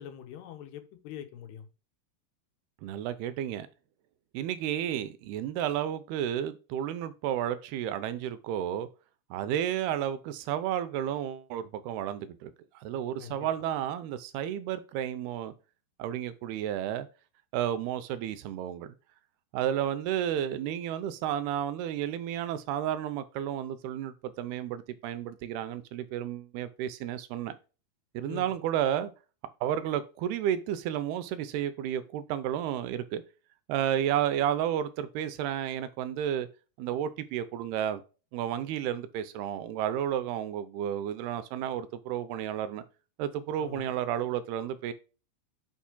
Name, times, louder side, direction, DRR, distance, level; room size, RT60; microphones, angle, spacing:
voice 1, 0.0-1.7 13.2-13.4 28.3-28.6 43.6-43.9, left 9 dB, 90° left, 3.2 m, -43 dB
voice 2, 2.8-3.7 4.3-8.9 9.3-15.5 16.0-17.1 17.5-18.9 19.5-27.6 28.1-29.1 29.6-33.2 33.7-36.5 36.8-38.0 38.3-42.8 43.2-44.9, right 10 dB, 80° right, 2.7 m, -32 dB
9.9 x 5.7 x 2.2 m
omnidirectional pair, 4.6 m